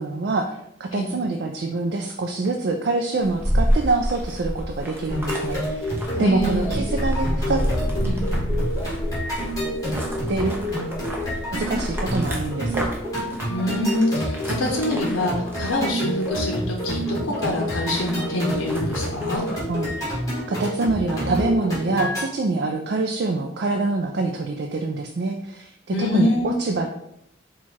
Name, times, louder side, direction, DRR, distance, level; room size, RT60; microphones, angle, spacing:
voice 1, 0.0-5.9 6.2-7.6 10.3-10.7 11.5-12.9 19.7-20.1 20.5-26.9, right 3 dB, 55° right, 3 dB, 0.3 m, -25 dB
sound 1, 3.2-20.1, equal, 10° right, 0.7 m, -29 dB
sound 2, 5.1-22.2, equal, 15° left, 1.7 m, -28 dB
voice 2, 6.2-6.7 8.0-8.2 13.5-19.4 25.9-26.6, left 1 dB, 85° left, 0 dB, 0.6 m, -25 dB
4.6 x 2.3 x 4.1 m, 0.78 s
head